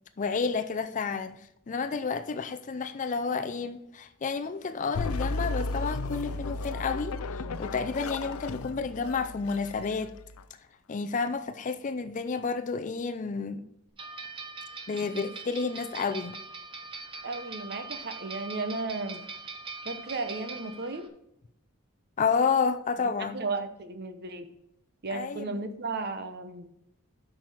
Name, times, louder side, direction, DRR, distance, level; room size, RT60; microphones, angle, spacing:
voice 1, 0.2-10.1 10.9-13.6 14.9-16.4 22.2-23.4 25.1-25.6, left 5 dB, 35° left, 0.4 m, -30 dB
sound 1, 4.9-10.4, left 3 dB, 90° left, 0.5 m, -34 dB
sound 2, 14.0-21.1, right 4 dB, 25° right, 0.9 m, -42 dB
voice 2, 17.2-19.2 19.8-21.1 23.2-24.5 25.0-26.7, right 3 dB, 50° right, 0.8 m, -34 dB
8.4 x 6.0 x 4.8 m
head